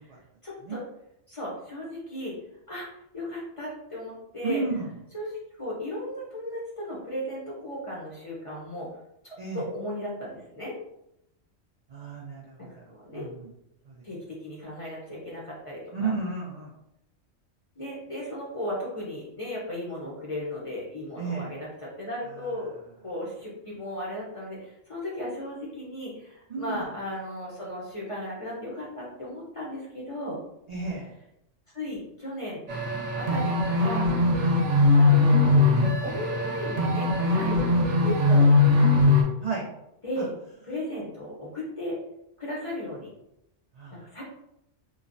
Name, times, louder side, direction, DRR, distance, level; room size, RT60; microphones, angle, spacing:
voice 1, 0.4-0.8 1.3-2.3 2.7-2.9 3.1-4.6 5.1-8.9 9.2-10.7 12.6-13.2 14.0-16.1 17.8-22.7 23.0-30.4 31.7-32.6 33.1-34.1 34.9-35.7 36.0-38.9 40.0-40.3 40.7-42.0 42.4-43.1 44.0-44.2, left 1 dB, 40° left, -5 dB, 0.5 m, -36 dB
voice 2, 4.4-4.9 9.4-9.7 11.9-13.5 13.9-14.0 15.9-16.7 21.2-21.5 22.2-22.8 26.5-26.8 30.7-31.1 33.3-33.4 34.4-34.6 39.4-39.7 40.2-40.3 43.7-44.1, right 4 dB, 90° right, -4 dB, 0.3 m, -33 dB
sound 1, 32.7-39.2, left 2 dB, 70° right, 0.9 m, -21 dB
3.1 x 2.0 x 2.5 m, 0.81 s
omnidirectional pair, 1.3 m